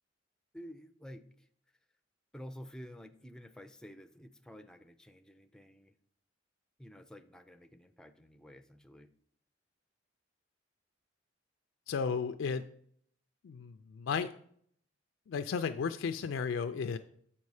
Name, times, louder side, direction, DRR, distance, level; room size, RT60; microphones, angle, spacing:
voice 1, 0.5-1.5 2.3-5.9 6.8-9.1, equal, 5° left, 8 dB, 0.4 m, -50 dB
voice 2, 11.9-12.6 13.4-14.3 15.3-17.0, left 6 dB, 80° left, 9 dB, 0.4 m, -34 dB
7.4 x 5.3 x 4.8 m, 0.64 s
head